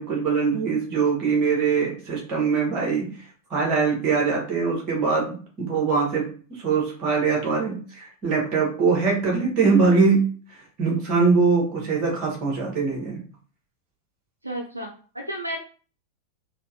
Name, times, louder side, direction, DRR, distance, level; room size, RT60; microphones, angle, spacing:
voice 1, 0.0-3.1 3.5-10.3 10.5-13.2, right 4 dB, 35° right, -2 dB, 1.6 m, -22 dB
voice 2, 14.4-14.9 15.1-15.6, right 1 dB, 85° right, 2 dB, 0.5 m, -31 dB
4.1 x 2.5 x 2.8 m, 0.40 s
figure-of-eight pair, 90°, 0 cm